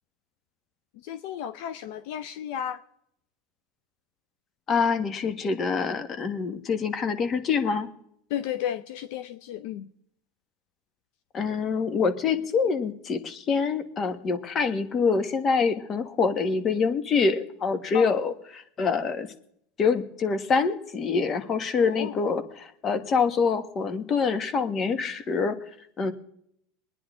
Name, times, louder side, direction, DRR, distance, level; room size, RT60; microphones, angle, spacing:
voice 1, 1.0-2.8 8.3-9.9 17.9-18.1 21.8-22.2, left 10 dB, 70° left, 14 dB, 0.6 m, -33 dB
voice 2, 4.7-7.9 11.3-19.3 19.8-25.6 26.0-26.1, left 5 dB, 35° left, 10 dB, 1.5 m, -25 dB
23.5 x 10.0 x 3.7 m, 0.72 s
supercardioid pair, 115°, 0 cm